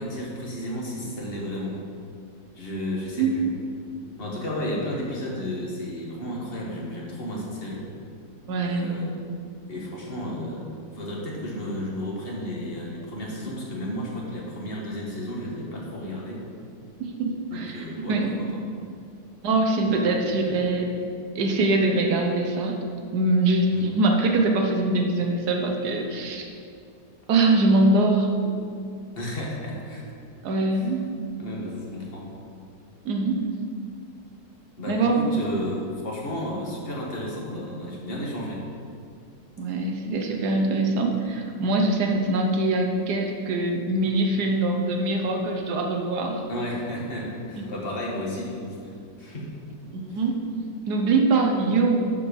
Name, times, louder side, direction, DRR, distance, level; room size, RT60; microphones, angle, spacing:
voice 1, 0.0-1.8 2.6-3.5 4.2-7.8 8.6-9.2 9.7-10.7 10.9-16.4 17.5-18.2 19.8-20.0 23.7-23.8 29.2-30.1 30.7-30.9 31.4-32.3 34.8-38.6 46.5-48.9 49.2-49.5 50.1-50.2, left 1 dB, 40° left, -3 dB, 1.9 m, -32 dB
voice 2, 8.5-8.9 17.0-18.3 19.4-20.9 21.3-22.8 23.1-26.5 27.3-28.5 30.4-31.0 33.1-33.5 34.9-35.3 39.6-46.4 47.6-47.7 49.9-50.4 50.9-52.1, right 2 dB, 90° right, 2 dB, 1.5 m, -23 dB
12.0 x 4.7 x 5.4 m, 2.3 s
omnidirectional pair, 1.7 m